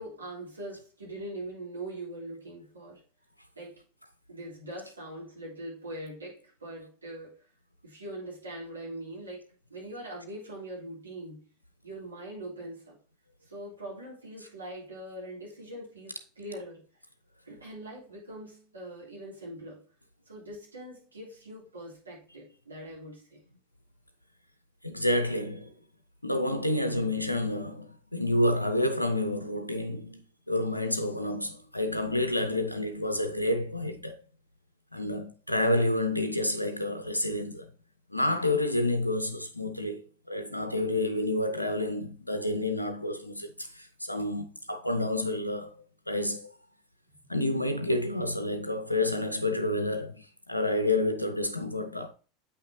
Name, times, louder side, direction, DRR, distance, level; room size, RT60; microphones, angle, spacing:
voice 1, 0.0-3.0 3.5-3.8 4.3-7.4 7.8-11.4 11.8-13.0 13.4-16.8 17.4-19.8 20.2-23.4 35.0-35.3, right 1 dB, 80° right, 3.3 m, -42 dB
voice 2, 24.8-25.7 26.2-34.2 34.9-37.7 38.1-40.0 40.3-46.5 47.3-52.1, left 1 dB, 90° left, 0.5 m, -29 dB
8.3 x 5.7 x 2.8 m
figure-of-eight pair, 80°, 0 cm